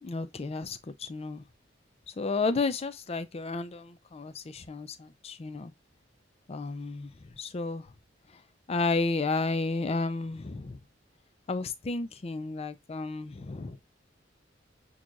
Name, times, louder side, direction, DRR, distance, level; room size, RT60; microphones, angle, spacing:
voice 1, 0.0-1.4 2.1-5.7 6.5-7.1 7.4-7.9 8.7-10.8 11.5-13.8, left 3 dB, 35° left, 0.5 m, -32 dB
6.2 x 2.4 x 2.4 m
head